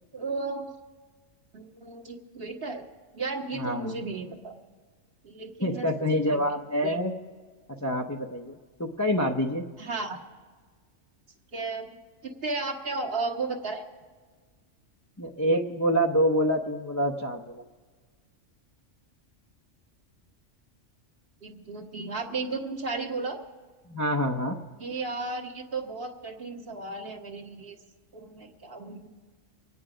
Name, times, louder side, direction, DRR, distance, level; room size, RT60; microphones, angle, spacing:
voice 1, 0.1-0.7 1.5-2.8 3.1-4.5 5.2-6.0 6.3-6.4 6.8-7.0 9.8-10.2 11.5-11.9 12.2-13.9 21.4-23.4 24.8-27.7 28.1-29.1, right 3 dB, 50° right, 0 dB, 1.7 m, -34 dB
voice 2, 3.6-4.0 5.6-7.1 7.7-9.7 15.2-17.6 23.9-24.6, equal, 20° left, 0 dB, 0.5 m, -27 dB
24.5 x 9.5 x 5.0 m, 1.5 s
omnidirectional pair, 1.3 m